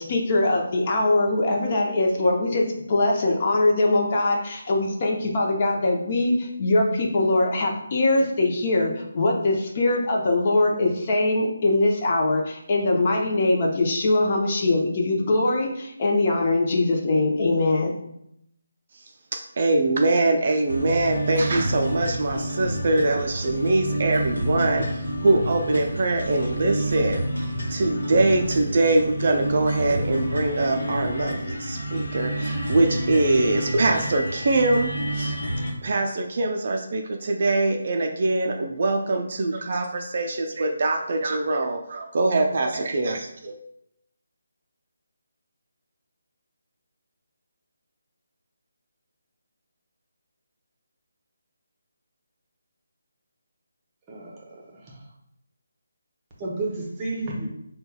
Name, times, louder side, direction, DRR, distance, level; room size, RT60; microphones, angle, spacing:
voice 1, 0.0-17.9, left 2 dB, 35° left, 0 dB, 0.6 m, -22 dB
voice 2, 19.3-35.4 35.8-43.6, right 2 dB, 45° right, 3 dB, 0.4 m, -23 dB
sound 1, 20.7-35.7, right 1 dB, 70° left, 0.9 m, -29 dB
voice 3, 54.1-55.0 56.4-57.5, right 2 dB, 20° right, -3 dB, 0.8 m, -32 dB
5.2 x 2.2 x 2.2 m, 0.77 s
figure-of-eight pair, 150°, 0 cm